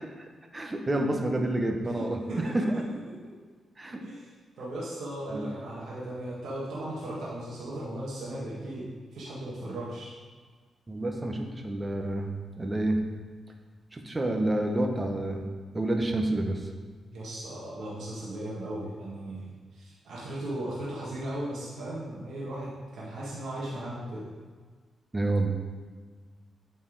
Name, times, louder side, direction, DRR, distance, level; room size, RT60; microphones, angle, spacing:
voice 1, 0.5-2.6 3.8-4.0 5.3-5.5 10.9-12.3 12.6-13.0 13.9-15.4 15.7-16.6 25.1-25.5, right 1 dB, 20° right, 3 dB, 0.9 m, -28 dB
voice 2, 2.0-2.8 4.0-4.3 4.6-10.1 17.1-24.2, right 1 dB, 80° right, -7 dB, 1.6 m, -37 dB
8.1 x 4.2 x 3.8 m, 1.5 s
cardioid pair, 90°, 0 cm